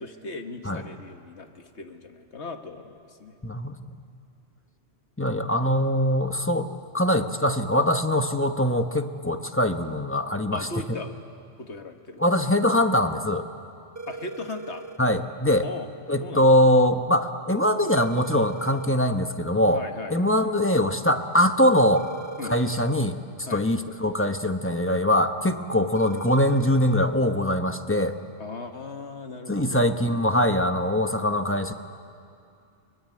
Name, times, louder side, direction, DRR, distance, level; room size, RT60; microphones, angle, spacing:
voice 1, 0.0-3.4 10.5-11.2 11.6-12.2 14.1-14.8 15.6-15.9 16.2-16.4 19.7-20.3 22.4-22.5 23.5-23.6 28.4-29.9, left 3 dB, 70° left, 5 dB, 1.8 m, -38 dB
voice 2, 3.4-3.8 5.2-6.7 6.9-11.0 12.2-13.5 15.0-15.6 16.1-19.8 20.1-22.0 22.5-23.2 23.5-28.2 29.5-31.7, left 1 dB, 10° left, 7 dB, 0.9 m, -22 dB
sound 1, 14.0-15.0 18.0-19.0 22.0-23.0 26.0-27.0, right 3 dB, 15° right, 0.8 m, -39 dB
24.0 x 21.5 x 9.6 m, 2.5 s
omnidirectional pair, 1.2 m